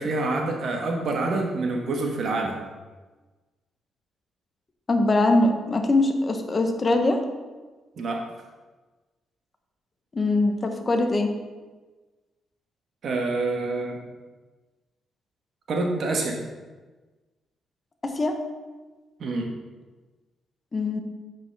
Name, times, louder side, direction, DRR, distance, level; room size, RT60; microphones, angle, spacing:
voice 1, 0.0-2.6 8.0-8.2 13.0-14.0 15.7-16.4 19.2-19.5, right 2 dB, 60° right, 2 dB, 1.2 m, -27 dB
voice 2, 4.9-7.2 10.1-11.3 18.1-18.4 20.7-21.0, left 2 dB, 30° left, 5 dB, 0.9 m, -22 dB
7.5 x 5.9 x 3.4 m, 1.3 s
cardioid pair, 100°, 0 cm